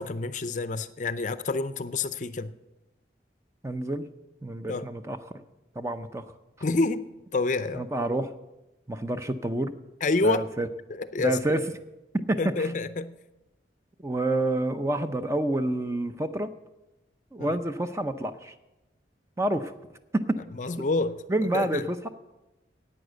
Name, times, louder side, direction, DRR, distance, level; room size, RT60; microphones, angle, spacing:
voice 1, 0.0-2.5 4.7-4.9 6.6-7.1 7.3-7.9 10.0-10.5 10.9-11.6 12.4-13.1 17.4-17.6 20.5-21.8, left 3 dB, 45° left, 13 dB, 0.5 m, -28 dB
voice 2, 3.6-4.0 4.4-5.4 5.8-6.2 7.7-8.4 8.9-9.7 10.2-10.7 11.2-11.6 12.3-12.7 14.0-16.5 17.3-18.5 19.4-19.7 21.3-22.1, right 1 dB, 15° right, 9 dB, 0.5 m, -28 dB
11.5 x 9.0 x 7.9 m, 1.0 s
head